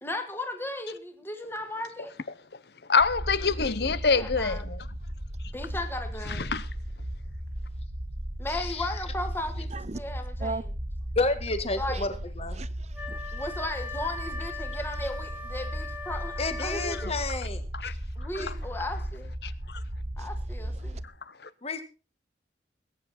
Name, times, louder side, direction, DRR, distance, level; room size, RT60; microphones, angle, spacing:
voice 1, 0.0-2.1 4.1-4.7 5.5-6.5 8.4-9.7 9.9-10.7 11.8-12.1 13.3-17.1 18.2-19.3 20.2-21.0, left 1 dB, 15° left, 1.8 m, -36 dB
voice 2, 2.9-4.8 6.3-6.7 17.8-17.9 19.7-19.8, left 5 dB, 65° left, 0.9 m, -25 dB
sound 1, 3.0-21.0, equal, 65° right, 1.7 m, -36 dB
voice 3, 8.5-8.9 11.2-12.6 16.4-17.9 18.4-18.6 21.6-21.8, left 3 dB, 35° left, 1.7 m, -31 dB
voice 4, 12.6-13.2 20.2-20.3 20.8-21.0, right 3 dB, 40° right, 0.7 m, -37 dB
Wind instrument woodwind instrument, 12.9-17.4, left 4 dB, 10° right, 2.1 m, -40 dB
20.0 x 9.6 x 4.3 m
head